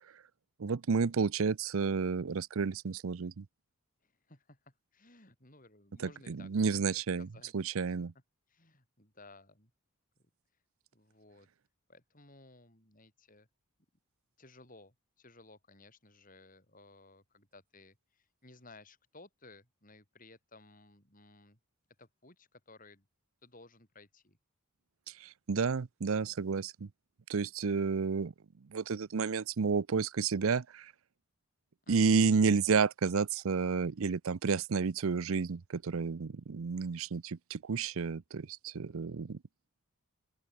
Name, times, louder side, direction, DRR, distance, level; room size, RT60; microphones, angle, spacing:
voice 1, 0.6-3.5 6.3-7.3 7.5-8.1 25.2-26.9 27.3-28.3 28.7-30.9 31.9-39.4, right 5 dB, 70° right, 0.5 m, -31 dB
voice 2, 4.0-7.8 8.5-9.7 10.2-10.3 10.9-11.5 11.9-13.5 14.4-21.6 22.0-23.1 23.4-24.4 31.8-32.3, left 2 dB, 40° left, 7.9 m, -58 dB
open air
head